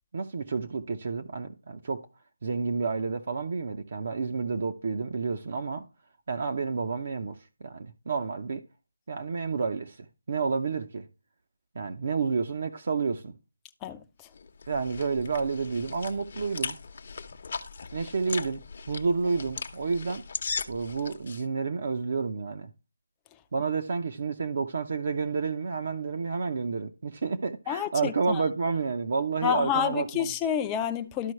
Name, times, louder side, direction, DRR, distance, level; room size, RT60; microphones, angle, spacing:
voice 1, 0.1-2.0 2.4-5.9 6.3-8.6 9.1-11.1 11.7-13.3 14.7-16.8 17.9-20.2 20.7-22.7 23.5-30.3, right 4 dB, 50° right, 0.7 m, -30 dB
sound 1, 14.3-21.4, left 5 dB, 50° left, 0.8 m, -38 dB
voice 2, 27.7-28.4 29.4-31.3, left 8 dB, 15° left, 0.5 m, -28 dB
12.5 x 4.5 x 3.1 m
figure-of-eight pair, 165°, 0 cm